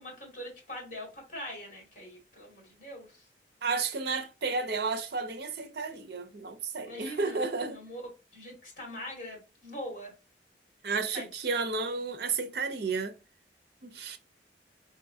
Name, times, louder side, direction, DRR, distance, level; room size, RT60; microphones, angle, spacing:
voice 1, 0.0-3.3 6.9-8.0 8.3-10.1 11.1-11.3, equal, 45° left, 2.1 m, -43 dB
voice 2, 3.6-7.8 10.8-13.2 13.8-14.2, right 4 dB, 60° right, 0.6 m, -32 dB
3.9 x 3.6 x 2.6 m
head